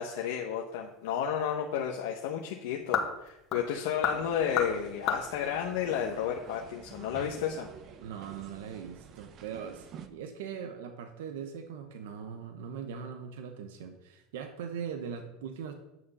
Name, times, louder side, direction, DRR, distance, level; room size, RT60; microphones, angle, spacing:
voice 1, 0.0-7.7, left 8 dB, 80° left, 0 dB, 1.0 m, -32 dB
sound 1, 0.8-6.6, left 6 dB, 50° left, 1.7 m, -36 dB
sound 2, 4.0-10.1, right 7 dB, 50° right, 0.9 m, -49 dB
voice 2, 8.0-15.8, right 7 dB, 85° right, 6 dB, 1.1 m, -40 dB
9.3 x 6.6 x 5.5 m, 0.89 s
supercardioid pair, 105°, 0 cm